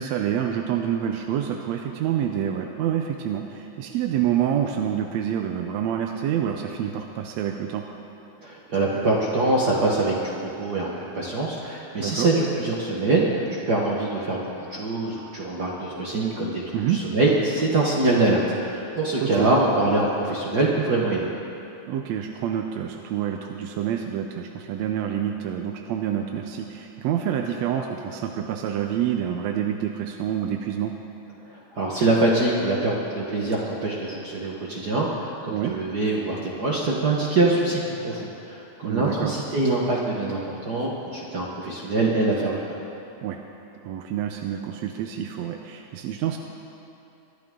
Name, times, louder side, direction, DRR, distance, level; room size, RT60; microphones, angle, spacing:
voice 1, 0.0-7.9 12.0-12.3 16.7-17.0 19.2-19.5 21.9-30.9 35.5-35.8 38.8-39.4 43.2-43.4 43.8-46.4, right 9 dB, 75° right, 4 dB, 1.7 m, -27 dB
voice 2, 8.4-21.3 31.5-42.7, right 2 dB, 55° right, -3 dB, 1.1 m, -24 dB
23.0 x 11.5 x 3.7 m, 2.8 s
omnidirectional pair, 3.6 m